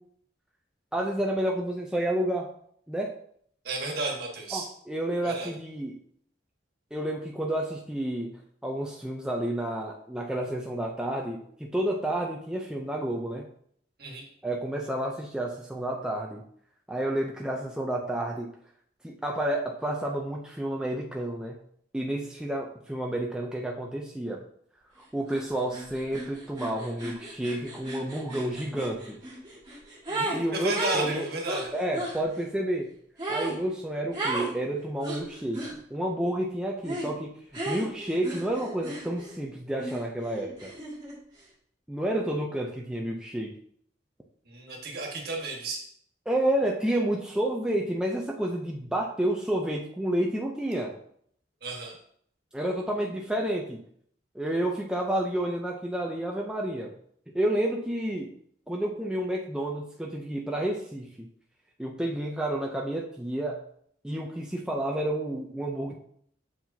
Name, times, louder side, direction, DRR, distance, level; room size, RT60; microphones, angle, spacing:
voice 1, 0.9-2.5 2.9-3.1 4.5-6.0 6.9-8.3 8.6-13.5 14.4-16.4 16.9-18.5 19.0-21.6 21.9-24.4 25.0-29.2 30.3-31.3 31.7-32.9 33.3-37.3 37.7-40.7 41.9-43.5 46.3-50.9 52.5-53.8 54.3-56.9 57.3-58.3 58.7-61.3 61.8-63.6 64.0-65.9, right 1 dB, 5° right, -1 dB, 0.4 m, -30 dB
voice 2, 3.6-4.7 5.2-5.5 14.0-14.2 30.1-31.7 44.4-45.8 51.6-51.9, right 2 dB, 55° right, 0 dB, 1.5 m, -33 dB
sound 1, 25.3-25.4 25.7-30.4 30.7-32.2 33.2-33.6 34.1-34.5 35.0-35.8 36.8-37.1 37.5-39.4 39.8-41.2, right 1 dB, 20° right, 1.7 m, -34 dB
7.4 x 4.7 x 2.7 m, 0.64 s
head